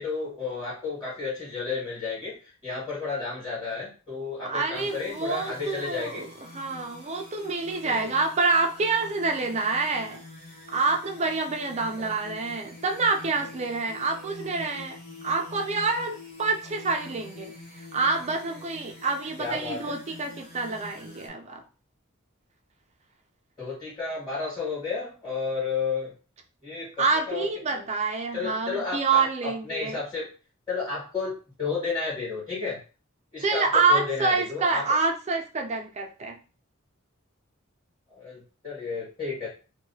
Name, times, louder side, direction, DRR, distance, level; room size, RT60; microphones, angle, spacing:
voice 1, 0.0-2.3 2.6-6.3 7.8-8.2 19.4-19.8 23.6-26.1 26.6-27.9 28.3-30.3 30.7-32.8 33.3-34.9 38.1-39.5, left 4 dB, 20° left, -8 dB, 1.6 m, -32 dB
voice 2, 4.4-6.3 6.5-10.2 10.7-15.0 15.2-17.5 17.9-21.6 27.0-30.0 33.4-36.4, right 4 dB, 35° right, 4 dB, 0.4 m, -27 dB
sound 1, 4.7-21.3, left 2 dB, 50° left, 0.9 m, -46 dB
2.8 x 2.3 x 2.7 m, 0.34 s
head